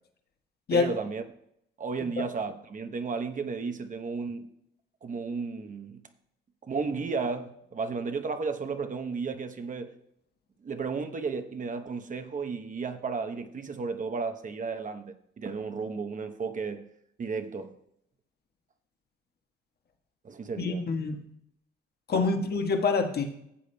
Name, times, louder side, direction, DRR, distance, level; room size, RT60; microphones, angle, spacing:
voice 1, 0.7-1.2 1.8-4.5 5.0-6.0 6.6-9.9 10.6-16.9 17.2-17.8 20.2-20.8 22.1-22.3, right 4 dB, 40° right, 0.9 m, -33 dB
voice 2, 20.6-21.3 22.1-23.2, left 4 dB, 55° left, 1.4 m, -26 dB
15.5 x 8.2 x 2.3 m
cardioid pair, 90°, 20 cm